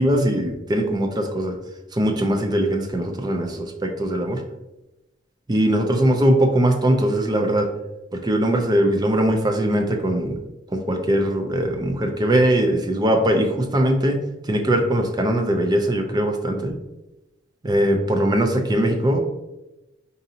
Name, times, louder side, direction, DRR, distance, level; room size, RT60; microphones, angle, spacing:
voice 1, 0.0-1.5 1.9-4.4 5.5-7.7 8.1-10.4 10.7-14.2 14.5-16.7 17.6-19.2, right 1 dB, 20° right, 4 dB, 0.4 m, -21 dB
4.9 x 2.7 x 2.7 m, 0.98 s
head